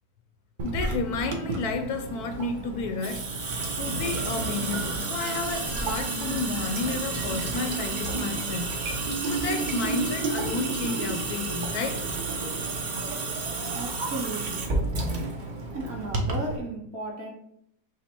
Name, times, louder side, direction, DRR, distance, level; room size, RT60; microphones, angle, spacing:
voice 1, 0.6-3.3 3.8-8.7 9.3-12.0 12.6-12.7, left 4 dB, 70° left, 1.0 m, -31 dB
Water tap faucet / Sink (filling or washing) / Drip, 0.6-16.6, right 3 dB, 70° right, 0.4 m, -30 dB
voice 2, 13.7-14.8 15.7-17.3, right 2 dB, 45° right, 1.0 m, -35 dB
5.9 x 2.0 x 4.4 m
omnidirectional pair, 1.8 m